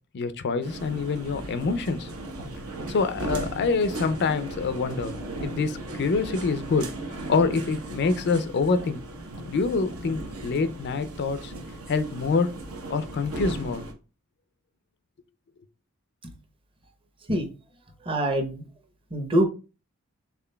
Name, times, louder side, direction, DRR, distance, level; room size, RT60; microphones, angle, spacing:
voice 1, 0.1-2.1 2.9-6.9 7.3-9.0 9.5-11.5 11.9-12.5 12.9-13.9, left 4 dB, 50° left, 12 dB, 0.4 m, -26 dB
sound 1, 0.6-13.9, right 1 dB, 70° right, 0.9 m, -37 dB
voice 2, 18.0-18.6 19.1-19.5, right 1 dB, 25° right, 4 dB, 0.8 m, -24 dB
5.8 x 3.7 x 2.2 m, 0.33 s
head